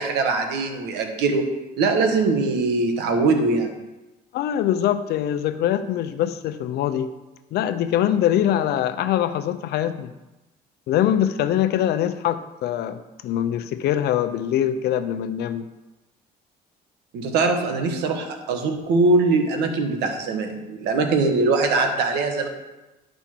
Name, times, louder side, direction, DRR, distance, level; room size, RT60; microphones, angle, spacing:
voice 1, 0.0-1.5 1.8-3.7 17.1-22.5, right 3 dB, 80° right, 5 dB, 1.5 m, -22 dB
voice 2, 4.3-7.1 7.5-10.1 10.9-15.7, left 11 dB, 75° left, 11 dB, 0.7 m, -23 dB
11.5 x 5.5 x 4.6 m, 1.0 s
cardioid pair, 110°, 17 cm